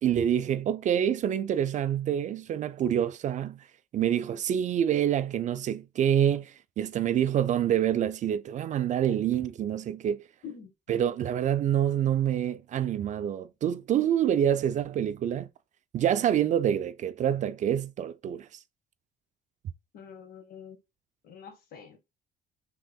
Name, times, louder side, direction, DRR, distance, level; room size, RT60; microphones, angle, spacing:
voice 1, 0.0-3.6 3.9-10.2 10.9-15.5 15.9-18.5, right 10 dB, 45° right, 0.4 m, -27 dB
voice 2, 19.9-20.8 21.2-22.0, left 7 dB, 60° left, 1.6 m, -45 dB
4.6 x 3.6 x 2.3 m
cardioid pair, 110°, 17 cm